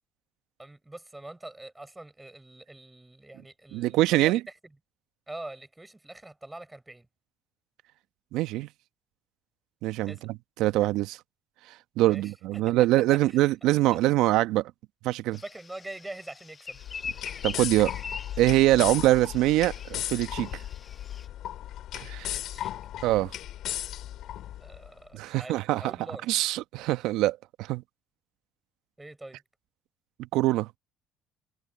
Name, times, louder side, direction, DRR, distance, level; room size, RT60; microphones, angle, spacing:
voice 1, 0.6-4.4 5.3-7.1 10.1-10.3 12.1-13.4 13.9-14.0 15.4-16.8 22.3-22.7 24.6-26.2 29.0-29.4, right 2 dB, 10° right, 6.2 m, -44 dB
voice 2, 3.7-4.4 8.3-8.7 9.8-11.2 12.0-14.7 15.0-15.4 17.4-17.9 18.4-20.5 22.0-22.3 23.0-23.3 25.1-25.9 26.3-27.8 30.3-30.7, right 16 dB, 75° right, 1.1 m, -24 dB
sound 1, 15.3-21.3, left 5 dB, 35° left, 1.6 m, -42 dB
sound 2, 16.7-24.9, left 12 dB, 65° left, 2.2 m, -36 dB
supercardioid pair, 70°, 0 cm